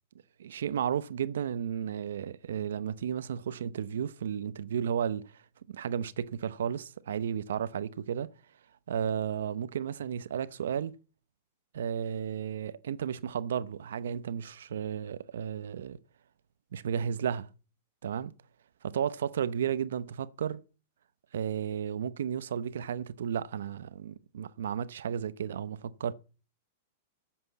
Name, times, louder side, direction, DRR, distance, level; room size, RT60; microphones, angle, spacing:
voice 1, 0.4-5.4 5.7-8.3 8.9-10.9 11.7-16.0 16.7-17.5 18.0-18.3 18.8-20.6 21.3-26.1, right 8 dB, 85° right, 0.8 m, -33 dB
9.9 x 7.7 x 8.3 m
supercardioid pair, 150°, 0 cm